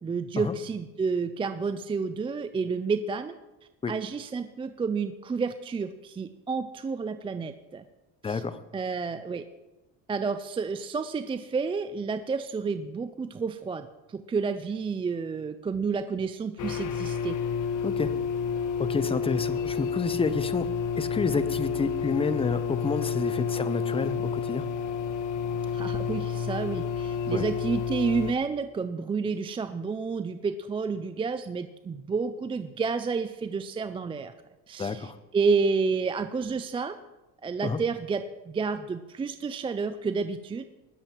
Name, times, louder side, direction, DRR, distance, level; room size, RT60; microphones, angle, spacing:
voice 1, 0.0-3.3 3.9-7.8 8.2-8.4 8.7-9.4 10.1-17.4 25.7-34.3 34.7-37.0 37.4-40.6, right 5 dB, 15° right, 10 dB, 0.4 m, -30 dB
voice 2, 8.2-8.6 17.8-18.1 18.8-20.7 21.0-24.7 27.3-27.4 34.8-35.2 37.6-37.8, left 4 dB, 15° left, 13 dB, 0.7 m, -29 dB
sound 1, 16.6-28.3, left 6 dB, 60° left, 1.2 m, -30 dB
20.0 x 7.6 x 4.5 m, 1.1 s
cardioid pair, 120°, 35 cm